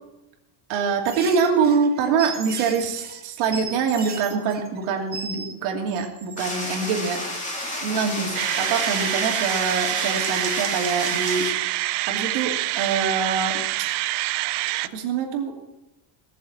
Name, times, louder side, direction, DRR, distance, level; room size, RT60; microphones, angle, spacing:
voice 1, 0.7-7.2 7.8-11.5 12.1-13.7 14.8-15.5, right 5 dB, 80° right, 2 dB, 2.9 m, -24 dB
sound 1, 1.1-5.5 5.9-6.7 11.4-11.7, right 5 dB, 20° right, 1.3 m, -37 dB
sound 2, 6.4-11.5, left 1 dB, 15° left, 2.9 m, -31 dB
sound 3, 8.3-14.9, right 18 dB, 55° right, 0.6 m, -26 dB
18.5 x 7.2 x 7.3 m, 0.93 s
cardioid pair, 160°, 49 cm